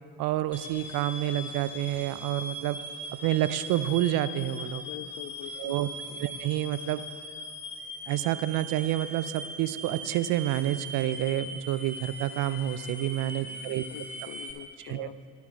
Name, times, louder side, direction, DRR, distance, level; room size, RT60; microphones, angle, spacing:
voice 1, 0.2-2.8 3.2-4.8 5.6-5.9 6.2-7.0 8.1-13.8 14.8-15.1, right 13 dB, 50° right, 14 dB, 0.5 m, -28 dB
sound 1, 0.5-14.5, equal, 5° right, 1.5 m, -40 dB
voice 2, 4.8-6.2 13.4-15.3, left 12 dB, 45° left, 14 dB, 0.5 m, -45 dB
12.5 x 5.9 x 4.7 m, 2.3 s
hypercardioid pair, 60°, 44 cm